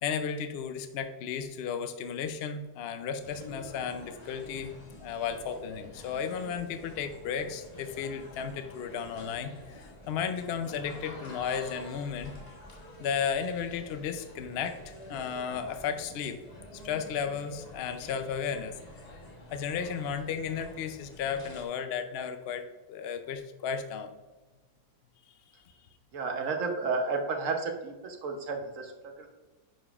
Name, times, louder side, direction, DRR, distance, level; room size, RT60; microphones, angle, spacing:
voice 1, 0.0-12.3 13.0-16.4 16.7-18.8 19.5-24.1, left 7 dB, 65° left, 8 dB, 0.6 m, -34 dB
sound 1, 3.2-21.6, left 1 dB, 30° left, 1.0 m, -48 dB
voice 2, 26.1-29.3, right 4 dB, 55° right, 3 dB, 1.2 m, -32 dB
9.8 x 5.1 x 2.4 m, 1.2 s
omnidirectional pair, 1.7 m